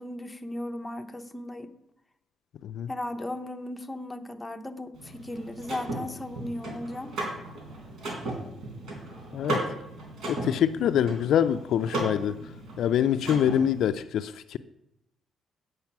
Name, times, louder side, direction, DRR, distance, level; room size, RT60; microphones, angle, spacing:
voice 1, 0.0-1.7 2.9-7.1, left 1 dB, 10° left, 6 dB, 0.8 m, -36 dB
Car / Mechanisms, 4.9-13.9, right 1 dB, 70° right, 3.9 m, -36 dB
voice 2, 10.3-12.4 12.8-14.6, left 9 dB, 75° left, 12 dB, 0.4 m, -25 dB
8.7 x 6.7 x 5.9 m, 0.83 s
cardioid pair, 90°, 0 cm